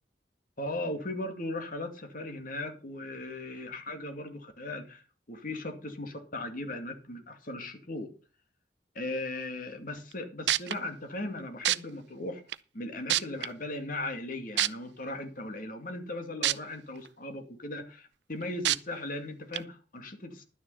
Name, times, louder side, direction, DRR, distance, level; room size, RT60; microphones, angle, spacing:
voice 1, 0.6-8.1 9.0-12.4 12.7-20.4, left 2 dB, 50° left, 2.4 m, -38 dB
sound 1, 10.1-10.2 10.5-10.7 11.6-11.8 12.5-12.6 13.1-13.5 14.6-14.7 16.4-16.5 17.0-17.1 18.6-18.8 19.5-19.6, right 13 dB, 80° right, 0.6 m, -25 dB
11.0 x 9.8 x 5.6 m
head